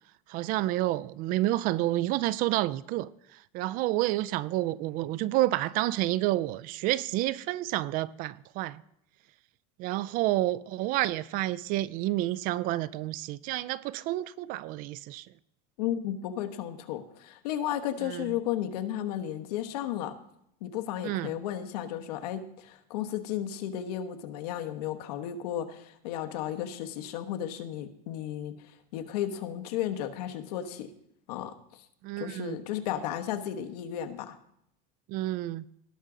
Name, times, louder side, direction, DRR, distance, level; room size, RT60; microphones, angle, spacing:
voice 1, 0.3-8.8 9.8-15.3 18.0-18.4 21.0-21.4 32.0-32.6 35.1-35.6, right 16 dB, 45° right, 0.4 m, -29 dB
voice 2, 15.8-20.2 20.6-30.9 31.3-31.6 32.2-34.4, left 11 dB, 85° left, 1.1 m, -34 dB
18.5 x 6.1 x 3.8 m
supercardioid pair, 145°, 20 cm